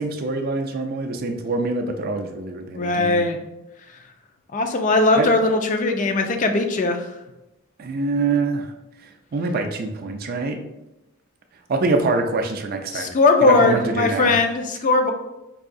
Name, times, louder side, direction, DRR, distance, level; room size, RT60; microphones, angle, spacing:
voice 1, 0.0-3.2 5.2-5.3 7.8-8.7 9.3-10.6 11.7-13.1 13.4-14.4, right 3 dB, 45° right, 5 dB, 0.4 m, -25 dB
voice 2, 2.7-3.4 4.5-7.1 12.9-15.1, left 3 dB, 35° left, 5 dB, 0.4 m, -19 dB
4.7 x 2.7 x 2.6 m, 0.96 s
head